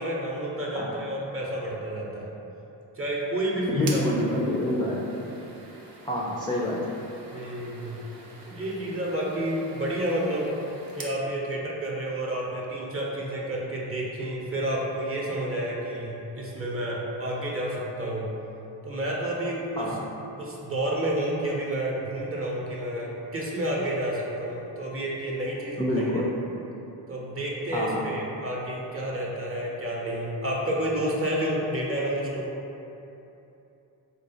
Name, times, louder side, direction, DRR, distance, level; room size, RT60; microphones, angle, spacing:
voice 1, 0.0-2.3 2.9-4.5 7.3-8.1 8.5-10.5 10.9-18.3 18.8-19.9 20.4-26.3 27.1-32.5, right 1 dB, 30° right, -4 dB, 0.7 m, -30 dB
voice 2, 3.7-5.0 6.0-6.9 19.8-20.0 25.8-26.3 27.7-28.1, left 1 dB, 10° left, -6 dB, 0.3 m, -27 dB
sound 1, 3.8-11.2, right 2 dB, 65° right, 0.7 m, -45 dB
3.8 x 2.1 x 2.8 m, 2.9 s
hypercardioid pair, 45°, 49 cm